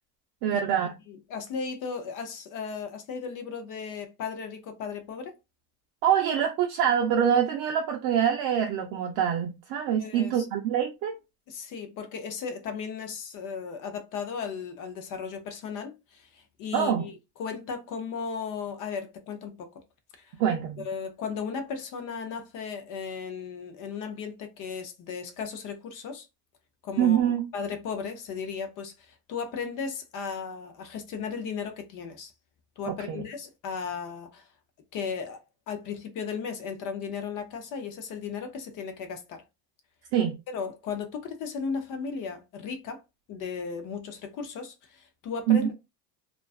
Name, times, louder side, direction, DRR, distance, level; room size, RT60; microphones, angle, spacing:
voice 1, 0.4-0.9 6.0-11.1 16.7-17.1 20.4-20.8 27.0-27.4 32.9-33.2 40.1-40.3 45.5-45.7, right 9 dB, 50° right, 0.5 m, -25 dB
voice 2, 1.1-5.3 10.0-10.5 11.5-19.7 20.2-20.3 20.8-26.3 26.8-32.3 32.8-34.5 34.9-35.4 35.7-39.4 40.5-43.0 43.3-45.7, left 6 dB, 45° left, 0.6 m, -36 dB
2.4 x 2.2 x 2.3 m
supercardioid pair, 125°, 47 cm